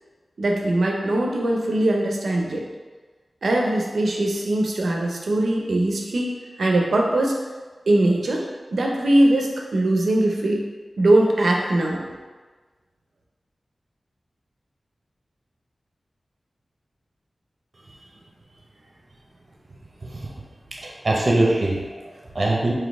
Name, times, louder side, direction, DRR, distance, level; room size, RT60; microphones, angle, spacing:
voice 1, 0.4-2.6 3.4-6.3 6.6-7.4 7.9-8.4 8.7-10.6 11.0-12.0, right 1 dB, 85° right, 0 dB, 0.6 m, -21 dB
voice 2, 20.0-20.3 20.8-22.7, right 2 dB, 50° right, -2 dB, 0.8 m, -23 dB
4.0 x 2.7 x 3.4 m, 1.3 s
wide cardioid pair, 65°, 0 cm